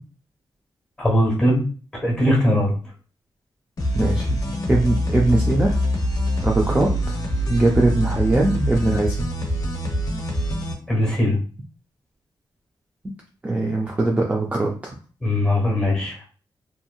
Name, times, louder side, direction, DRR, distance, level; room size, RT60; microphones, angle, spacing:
voice 1, 1.0-1.6 2.0-2.7 10.9-11.4 15.2-16.2, left 1 dB, 10° left, -2 dB, 1.2 m, -20 dB
sound 1, 3.8-10.7, equal, 45° left, 0.7 m, -24 dB
voice 2, 3.9-4.3 4.7-5.8 6.4-7.2 7.5-9.3 13.4-14.9, right 2 dB, 15° right, -1 dB, 0.4 m, -21 dB
2.8 x 2.6 x 2.3 m, 0.38 s
wide cardioid pair, 135°, 9 cm